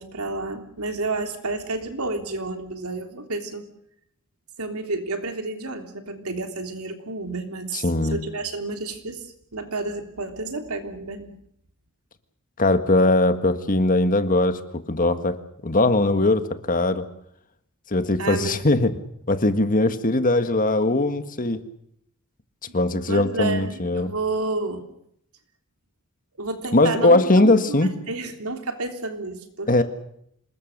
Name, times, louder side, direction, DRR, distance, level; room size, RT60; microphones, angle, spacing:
voice 1, 0.0-3.7 4.6-11.4 18.2-18.6 23.1-24.9 26.4-29.8, right 3 dB, 80° right, 5 dB, 3.4 m, -30 dB
voice 2, 7.7-8.2 12.6-14.6 14.9-15.4 15.6-17.1 17.9-19.0 19.3-21.6 22.7-24.1 26.7-27.9 29.7-29.8, left 2 dB, 40° left, 9 dB, 1.7 m, -20 dB
27.0 x 20.5 x 6.7 m, 0.72 s
head